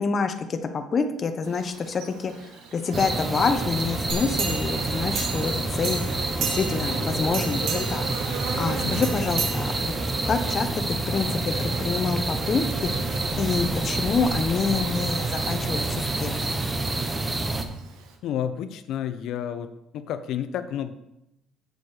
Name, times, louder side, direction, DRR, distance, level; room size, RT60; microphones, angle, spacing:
voice 1, 0.0-6.0 6.4-8.0 8.6-9.9 10.3-12.9 13.4-16.6, left 5 dB, 35° left, 8 dB, 0.9 m, -27 dB
Buzz, 1.4-18.2, right 6 dB, 85° right, 1.3 m, -40 dB
sound 1, 2.9-17.6, right 2 dB, 15° right, 0.9 m, -28 dB
sound 2, 4.1-5.6 5.8-6.9 7.3-8.1 9.0-10.1 10.6-10.7, right 6 dB, 65° right, 2.0 m, -32 dB
voice 2, 8.8-9.1 18.2-20.9, left 9 dB, 65° left, 11 dB, 0.7 m, -31 dB
8.0 x 7.1 x 4.9 m, 0.84 s
cardioid pair, 135°, 0 cm